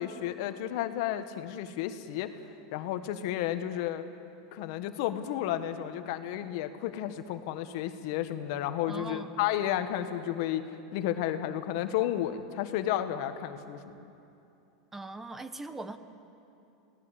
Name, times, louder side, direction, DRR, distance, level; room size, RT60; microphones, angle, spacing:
voice 1, 0.0-2.3 2.7-4.0 4.5-10.7 10.9-13.9, left 12 dB, 60° left, 9 dB, 1.5 m, -32 dB
voice 2, 8.9-9.3 14.9-16.0, right 2 dB, 10° right, 10 dB, 1.1 m, -40 dB
27.5 x 18.5 x 8.2 m, 2.8 s
supercardioid pair, 120°, 2 cm